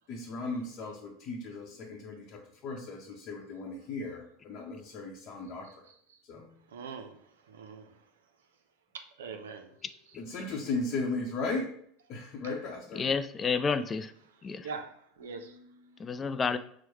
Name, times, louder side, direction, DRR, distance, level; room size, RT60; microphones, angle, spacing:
voice 1, 0.1-5.9 6.3-6.5 9.3-9.4 10.2-11.7 12.1-13.1 15.2-15.9, left 3 dB, 50° left, -2 dB, 0.8 m, -37 dB
voice 2, 6.7-7.2 7.5-7.9 8.9-9.7 14.6-14.9 15.2-15.5, right 5 dB, 85° right, 6 dB, 0.4 m, -41 dB
voice 3, 13.0-14.1 14.4-14.7 16.0-16.6, left 5 dB, 25° left, 11 dB, 0.3 m, -30 dB
4.5 x 2.1 x 4.5 m, 0.65 s
hypercardioid pair, 90°, 0 cm